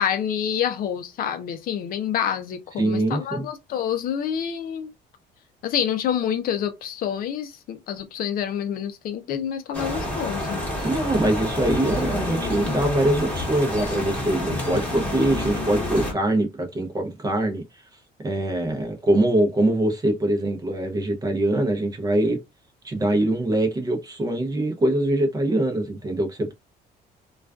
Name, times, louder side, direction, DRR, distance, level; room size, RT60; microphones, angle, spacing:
voice 1, 0.0-4.9 5.6-10.6, left 9 dB, 60° left, 0.5 m, -27 dB
voice 2, 2.8-3.4 10.8-17.8 18.2-22.4 22.8-26.5, right 1 dB, 20° right, 0.6 m, -23 dB
sound 1, 9.7-16.1, left 1 dB, 10° left, 1.0 m, -28 dB
2.3 x 2.2 x 2.3 m
cardioid pair, 110°, 17 cm